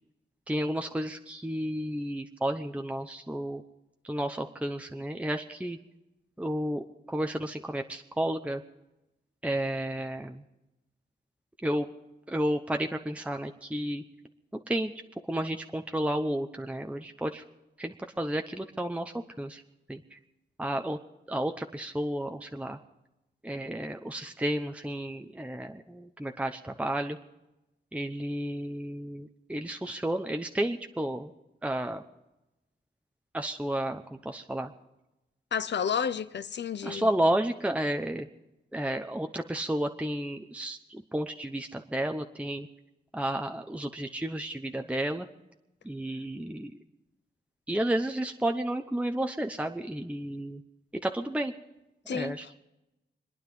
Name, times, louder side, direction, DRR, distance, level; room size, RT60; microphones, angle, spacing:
voice 1, 0.5-3.6 4.0-5.8 6.4-8.6 9.4-10.4 11.6-11.9 12.3-14.0 14.5-14.9 15.2-17.4 17.8-19.6 19.9-20.2 20.6-21.0 21.3-22.8 23.4-27.2 27.9-31.3 31.6-32.0 33.3-34.7 36.8-38.3 38.7-42.7 43.1-45.3 45.8-46.7 47.7-50.6 51.0-51.5 52.0-52.6, right 1 dB, 5° right, 0.8 m, -32 dB
voice 2, 35.5-37.1 52.1-52.6, left 7 dB, 75° left, 0.8 m, -31 dB
26.5 x 9.9 x 5.4 m
cardioid pair, 80°, 18 cm